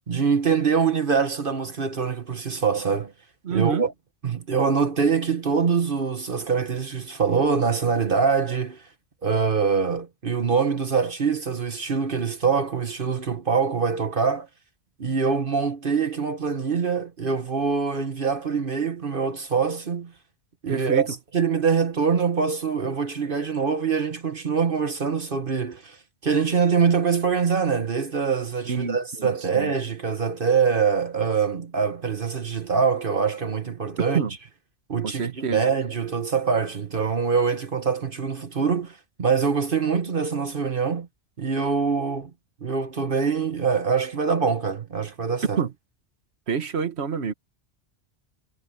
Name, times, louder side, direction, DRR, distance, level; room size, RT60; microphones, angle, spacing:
voice 1, 0.1-3.1 3.5-3.9 4.2-8.8 9.2-14.5 15.0-20.1 20.6-26.0 26.2-34.2 34.9-41.1 41.4-42.3 42.6-45.6, right 5 dB, 50° right, 1.4 m, -24 dB
voice 2, 3.4-3.9 20.7-21.0 28.7-29.7 34.1-34.3 35.0-35.6 45.6-45.7 46.5-47.3, right 6 dB, 70° right, 1.5 m, -27 dB
omnidirectional pair, 1.1 m